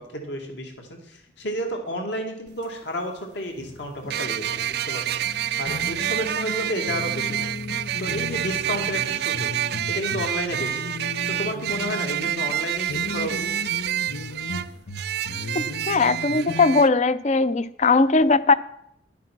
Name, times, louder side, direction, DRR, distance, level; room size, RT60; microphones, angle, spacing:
voice 1, 0.0-5.1 5.6-7.5 8.0-9.5 9.9-10.8 11.3-13.5, equal, 65° left, 3 dB, 2.2 m, -31 dB
sound 1, 2.5-2.6 4.1-16.9, right 12 dB, 55° right, 0.4 m, -28 dB
sound 2, 3.6-16.8, left 2 dB, 80° left, 0.8 m, -36 dB
voice 2, 15.5-18.5, left 3 dB, 35° left, 16 dB, 0.5 m, -19 dB
11.5 x 8.4 x 6.0 m, 0.76 s
head